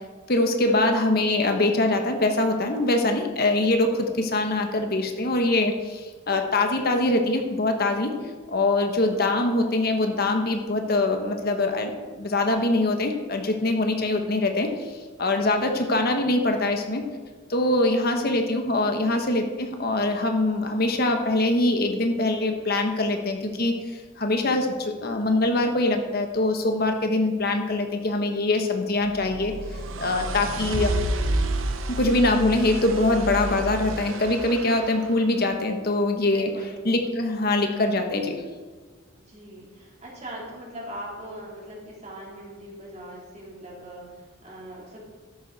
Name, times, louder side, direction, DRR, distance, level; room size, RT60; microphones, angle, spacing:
voice 1, 0.3-8.1 8.5-14.9 15.2-17.0 17.5-23.7 24.2-29.5 30.0-31.0 31.9-36.5 36.8-38.4, left 2 dB, 50° left, 4 dB, 1.2 m, -23 dB
sound 1, 29.1-35.2, right 2 dB, 85° right, 0.9 m, -30 dB
voice 2, 36.3-36.8 39.2-45.0, right 1 dB, 35° right, -4 dB, 3.7 m, -41 dB
13.0 x 10.5 x 4.2 m, 1.4 s
head